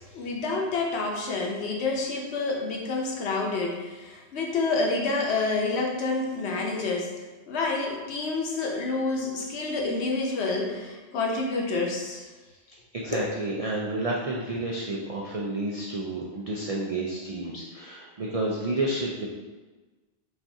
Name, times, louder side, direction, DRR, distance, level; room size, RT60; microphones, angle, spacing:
voice 1, 0.0-7.1 7.5-12.3 13.1-13.3, left 3 dB, 70° left, 0 dB, 1.0 m, -28 dB
voice 2, 12.7-19.3, right 2 dB, 70° right, -3 dB, 0.3 m, -30 dB
5.5 x 2.4 x 2.7 m, 1.2 s
omnidirectional pair, 1.2 m